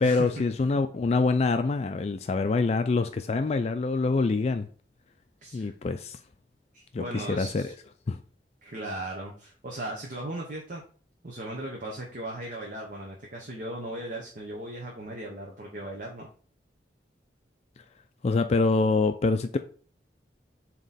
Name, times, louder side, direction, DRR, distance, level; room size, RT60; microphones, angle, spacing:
voice 1, 0.0-4.7 5.5-6.2 6.9-7.7 8.1-8.2 18.2-19.6, left 3 dB, 35° left, 0.3 m, -25 dB
voice 2, 5.4-5.7 6.7-7.7 8.6-10.8 11.2-16.3, right 1 dB, 50° right, 1.0 m, -37 dB
7.6 x 3.0 x 4.1 m
head